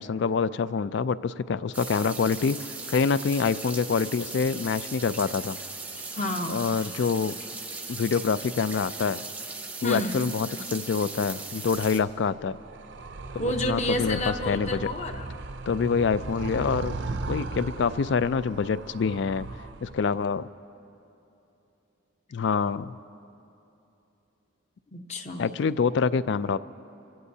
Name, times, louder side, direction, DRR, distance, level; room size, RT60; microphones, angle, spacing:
voice 1, 0.0-2.6 2.9-5.6 6.5-7.4 7.9-9.2 9.8-12.6 13.4-14.2 14.5-14.8 15.7-16.9 17.3-19.5 19.8-20.4 22.3-23.0 25.4-26.6, left 5 dB, 60° left, 16 dB, 0.3 m, -26 dB
sound 1, 1.7-12.0, right 3 dB, 10° right, 0.7 m, -38 dB
voice 2, 6.2-6.6 9.8-10.2 13.4-15.3 24.9-25.5, left 1 dB, 35° left, 5 dB, 0.9 m, -30 dB
Animal, 11.7-20.2, right 3 dB, 55° right, 0.5 m, -37 dB
26.5 x 16.5 x 2.8 m, 2.8 s
head